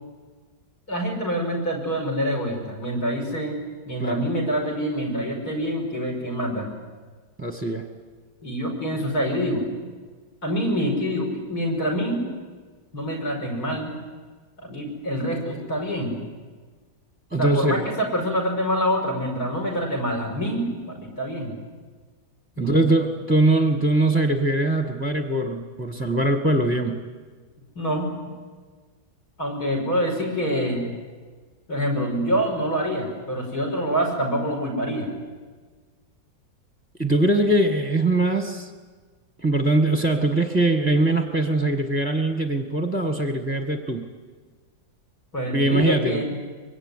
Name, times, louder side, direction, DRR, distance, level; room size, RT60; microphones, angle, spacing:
voice 1, 0.9-3.6 3.8-6.7 8.4-9.7 10.4-12.2 12.9-13.9 14.6-16.2 17.4-21.6 22.6-22.8 27.7-28.1 29.4-30.8 31.7-35.1 45.3-46.3, equal, 55° left, 2 dB, 6.5 m, -26 dB
voice 2, 7.4-7.9 17.3-17.9 22.6-27.0 37.0-38.7 39.4-44.1 45.5-46.2, right 2 dB, 5° right, 5 dB, 1.5 m, -22 dB
24.0 x 23.5 x 9.8 m, 1.5 s
omnidirectional pair, 2.0 m